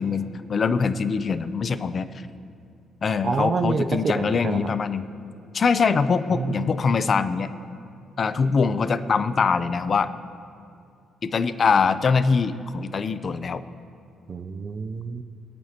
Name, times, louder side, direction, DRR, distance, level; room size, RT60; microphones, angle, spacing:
voice 1, 0.0-2.1 3.0-5.1 5.5-7.5 8.2-10.1 11.2-13.6, left 5 dB, 45° left, 12 dB, 0.6 m, -23 dB
voice 2, 3.2-4.6 6.3-6.8 14.3-15.2, right 4 dB, 45° right, 11 dB, 0.6 m, -27 dB
24.5 x 8.8 x 2.9 m, 2.5 s
cardioid pair, 85°, 0 cm